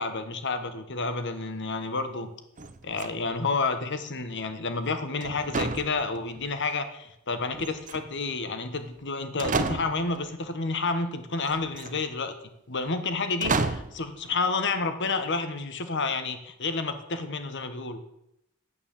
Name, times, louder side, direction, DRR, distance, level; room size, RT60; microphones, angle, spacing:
voice 1, 0.0-2.3 2.8-12.3 12.7-18.0, left 3 dB, 55° left, 9 dB, 1.4 m, -30 dB
sound 1, 2.6-3.4 5.2-6.5 7.5-8.3 9.0-9.1 9.4-10.2 11.5-12.0 13.4-14.0, right 3 dB, 35° right, 0.9 m, -31 dB
10.0 x 9.1 x 7.4 m, 0.81 s
head